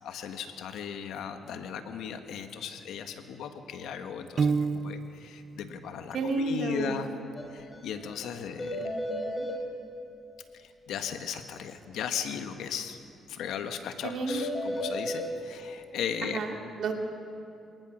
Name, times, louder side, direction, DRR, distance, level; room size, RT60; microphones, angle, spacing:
voice 1, 0.0-7.1 7.5-8.8 10.5-13.0 13.3-16.4, left 8 dB, 80° left, 7 dB, 1.5 m, -37 dB
Piano, 4.4-5.4, right 5 dB, 40° right, 0.8 m, -28 dB
voice 2, 6.1-7.1 8.8-9.5 14.0-14.4 16.2-16.9, right 4 dB, 65° right, 2 dB, 2.9 m, -32 dB
sound 1, 7.4-7.5 7.7-7.8 8.1-8.2 8.6-9.6 14.3-15.3, left 1 dB, 20° left, 3.5 m, -33 dB
27.0 x 18.5 x 6.3 m, 2.7 s
cardioid pair, 90°, 0 cm